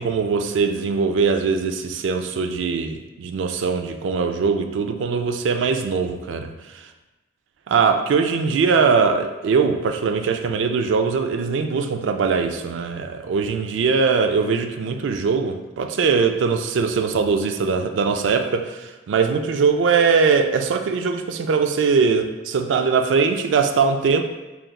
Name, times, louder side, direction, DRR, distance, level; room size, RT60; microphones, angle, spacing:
voice 1, 0.0-6.5 7.7-24.2, right 5 dB, 90° right, 6 dB, 0.3 m, -21 dB
5.0 x 2.9 x 2.2 m, 1.1 s
head